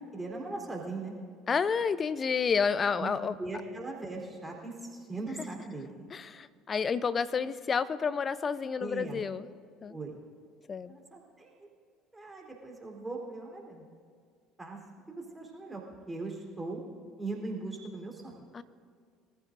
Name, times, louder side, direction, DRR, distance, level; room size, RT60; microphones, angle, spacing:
voice 1, 0.1-1.2 3.0-3.1 3.4-6.1 8.8-9.2 9.9-10.2 10.9-11.7 12.1-13.8 14.6-14.8 15.1-16.8 17.2-18.4, right 3 dB, 15° right, -1 dB, 3.8 m, -39 dB
voice 2, 1.5-3.4 6.1-9.5 9.8-10.0 10.7-10.9 18.5-18.6, left 6 dB, 35° left, 15 dB, 0.6 m, -30 dB
24.5 x 14.5 x 2.7 m, 2.1 s
hypercardioid pair, 70°, 0 cm